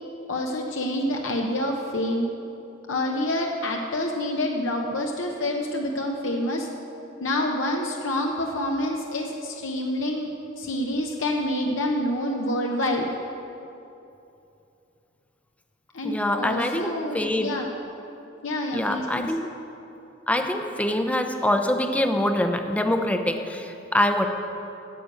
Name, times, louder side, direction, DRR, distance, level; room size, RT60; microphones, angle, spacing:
voice 1, 0.3-2.3 2.9-6.7 7.2-13.1 15.9-17.7 18.4-19.3, left 1 dB, 75° left, 1 dB, 0.8 m, -27 dB
voice 2, 16.0-16.9 17.1-17.5 18.7-19.5 20.3-24.3, left 1 dB, 5° left, 5 dB, 0.6 m, -24 dB
9.4 x 6.8 x 8.8 m, 2.8 s
head